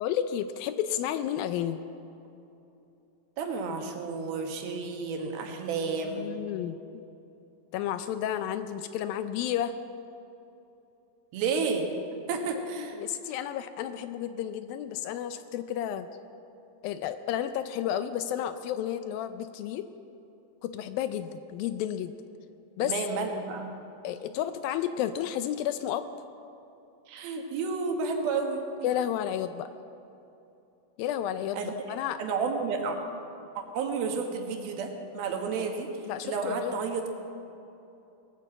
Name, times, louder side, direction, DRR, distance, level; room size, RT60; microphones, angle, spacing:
voice 1, 0.0-1.8 6.0-7.0 7.7-9.7 12.8-16.1 16.8-19.9 20.6-22.1 22.8-23.0 24.0-26.0 28.8-29.7 31.0-32.2 36.0-36.8, left 10 dB, 80° left, 11 dB, 2.2 m, -32 dB
voice 2, 3.4-6.3 11.3-11.9 12.3-13.0 22.8-23.7 27.1-28.6 31.5-31.7 32.2-33.0 33.6-35.9 36.2-37.1, right 4 dB, 75° right, 3 dB, 3.2 m, -31 dB
19.5 x 9.2 x 7.7 m, 2.8 s
omnidirectional pair, 4.4 m